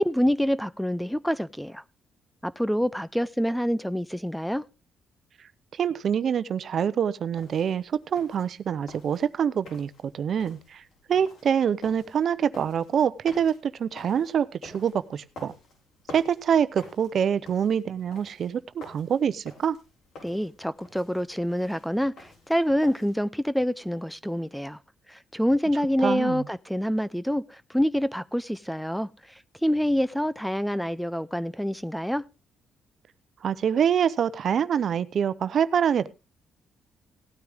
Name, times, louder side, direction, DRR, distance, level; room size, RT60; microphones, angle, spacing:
voice 1, 0.0-1.8 2.4-4.6 20.2-24.8 25.1-32.2, equal, ahead, 0.5 m, -27 dB
voice 2, 5.7-10.8 11.1-15.5 16.1-19.8 26.0-26.4 33.4-36.1, right 8 dB, 60° right, 0.8 m, -25 dB
sound 1, 7.3-23.2, left 2 dB, 75° left, 7.0 m, -50 dB
17.0 x 9.4 x 3.6 m
cardioid pair, 90°, 0 cm